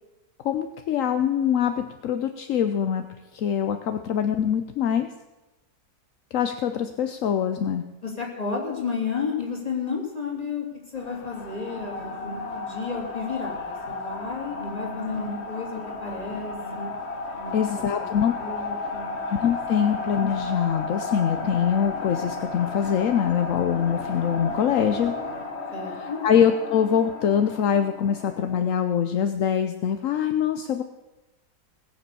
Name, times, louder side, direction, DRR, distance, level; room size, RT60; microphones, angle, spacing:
voice 1, 0.4-3.0 3.3-5.1 6.3-7.8 17.5-18.3 19.4-25.1 26.0-30.8, left 8 dB, 60° left, 8 dB, 0.9 m, -24 dB
voice 2, 8.0-10.7 10.9-16.9 17.4-18.1 18.3-19.2 19.7-19.8 25.7-26.2, left 5 dB, 20° left, -2 dB, 3.1 m, -32 dB
sound 1, 11.0-28.7, left 3 dB, 40° left, 1.5 m, -33 dB
19.5 x 7.2 x 6.8 m, 1.1 s
omnidirectional pair, 1.9 m